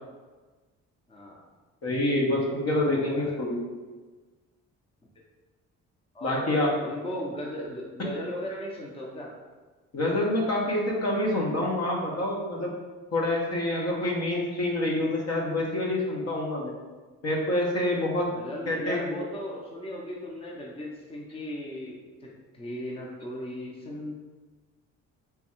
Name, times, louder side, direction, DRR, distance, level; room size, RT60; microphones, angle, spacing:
voice 1, 1.1-1.4 2.7-3.4 6.1-9.3 18.3-22.3 22.5-24.1, left 1 dB, 20° left, -2 dB, 0.7 m, -37 dB
voice 2, 1.8-3.6 6.2-6.7 9.9-12.7 13.1-16.7 17.2-18.3 18.7-19.2, left 1 dB, 55° left, -2 dB, 1.0 m, -27 dB
3.5 x 2.3 x 4.4 m, 1.3 s
cardioid pair, 90°, 30 cm